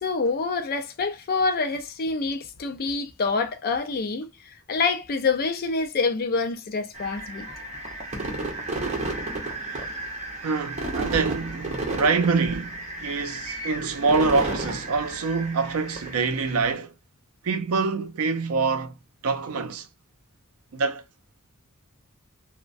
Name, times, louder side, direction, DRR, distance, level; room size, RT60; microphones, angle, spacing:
voice 1, 0.0-4.3 4.7-7.5, left 4 dB, 45° left, 0.4 m, -26 dB
sound 1, 6.9-16.7, right 2 dB, 30° right, 0.8 m, -33 dB
voice 2, 10.4-16.9 17.4-19.0 19.2-19.9 20.7-21.0, right 4 dB, 70° right, 0.5 m, -25 dB
3.1 x 2.1 x 2.5 m
head